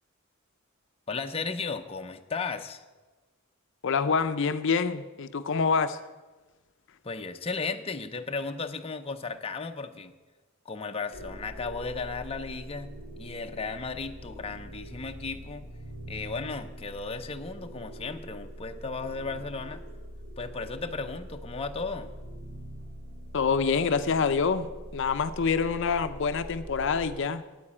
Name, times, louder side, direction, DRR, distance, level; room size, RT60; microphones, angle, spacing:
voice 1, 1.1-2.8 7.0-10.1 10.6-15.7 16.1-19.8 20.4-22.1, left 4 dB, 30° left, 5 dB, 0.7 m, -35 dB
voice 2, 3.8-6.0 23.3-27.4, left 5 dB, 65° left, 11 dB, 0.5 m, -26 dB
sound 1, 11.1-27.2, equal, 75° right, 1.6 m, -43 dB
9.4 x 9.2 x 8.6 m, 1.2 s
head